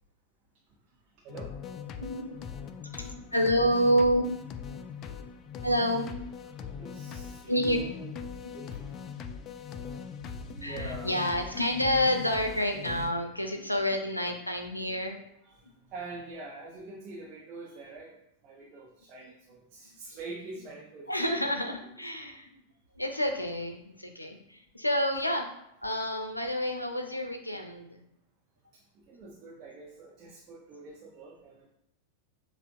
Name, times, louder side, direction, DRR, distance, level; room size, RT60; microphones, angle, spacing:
voice 1, 1.2-1.6 6.8-8.2 8.5-8.9 10.3-11.2 13.2-13.3 14.2-14.3 15.4-18.2 18.4-21.4 22.1-22.3 26.5-26.6 28.7-31.7, right 3 dB, 35° right, -2 dB, 0.8 m, -45 dB
sound 1, 1.3-13.1, left 6 dB, 35° left, 0.3 m, -41 dB
voice 2, 2.0-2.4 2.9-4.3 5.6-6.1 7.5-7.8 9.3-9.4 10.6-15.2 19.9-20.0 21.1-22.6 22.9-25.5 25.8-28.0, equal, 85° left, 4 dB, 0.5 m, -29 dB
6.7 x 2.5 x 2.6 m, 0.80 s
figure-of-eight pair, 90°, 0 cm